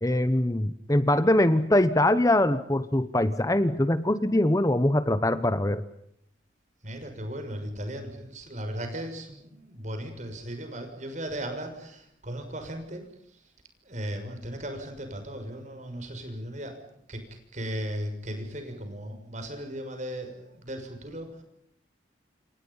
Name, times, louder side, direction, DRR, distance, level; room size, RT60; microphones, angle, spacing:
voice 1, 0.0-5.8, left 1 dB, 20° left, 13 dB, 0.9 m, -23 dB
voice 2, 6.8-13.0 13.8-16.8 17.1-17.2 17.5-21.4, equal, 40° right, 6 dB, 6.5 m, -36 dB
29.5 x 28.0 x 5.6 m, 0.72 s
head